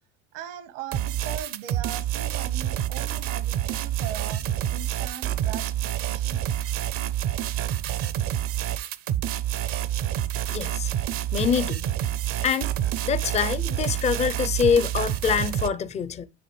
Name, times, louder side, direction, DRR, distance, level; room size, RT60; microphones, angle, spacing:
voice 1, 0.3-4.5 4.7-6.4, right 9 dB, 90° right, 1.3 m, -39 dB
sound 1, 0.9-15.7, right 11 dB, 40° right, 0.5 m, -28 dB
voice 2, 10.5-10.9 11.3-11.9 12.4-12.7 13.0-16.3, left 7 dB, 20° left, 0.4 m, -25 dB
9.4 x 3.6 x 3.2 m
supercardioid pair, 120°, 36 cm